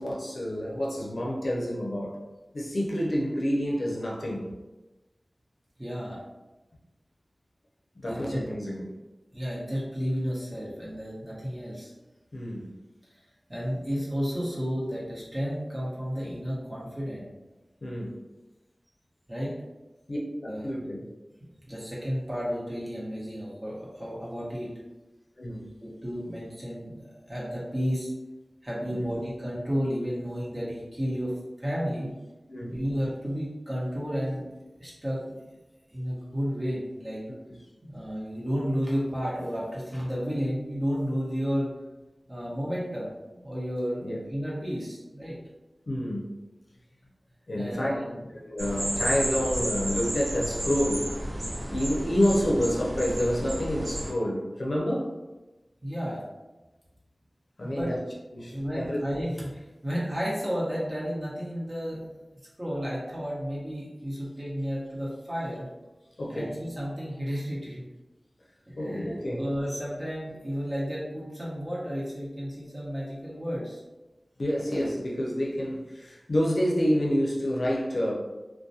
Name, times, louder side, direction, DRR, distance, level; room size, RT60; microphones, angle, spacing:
voice 1, 0.0-2.2 2.5-4.5 7.9-8.9 12.3-12.7 17.8-18.2 20.1-21.1 25.4-25.7 28.9-29.1 32.5-32.7 37.5-37.6 44.0-44.2 45.9-46.3 47.5-48.0 48.4-51.1 51.7-55.1 57.6-58.0 58.3-59.0 66.2-66.6 68.8-69.4 74.4-78.1, equal, 75° left, -4 dB, 0.5 m, -28 dB
voice 2, 5.8-6.2 8.1-8.4 9.3-11.9 13.5-17.3 19.3-19.5 20.5-20.7 21.7-24.7 25.8-28.1 28.6-32.1 32.7-34.4 34.8-35.2 35.9-37.2 37.8-41.7 42.3-44.0 44.3-45.3 47.6-48.2 55.8-56.2 57.6-57.9 58.5-62.0 62.6-65.7 66.3-67.9 68.7-73.8, equal, 30° right, -7 dB, 1.0 m, -32 dB
sound 1, 48.6-54.1, right 1 dB, 50° right, 0.5 m, -32 dB
2.3 x 2.1 x 2.6 m, 1.1 s
wide cardioid pair, 50°, 0 cm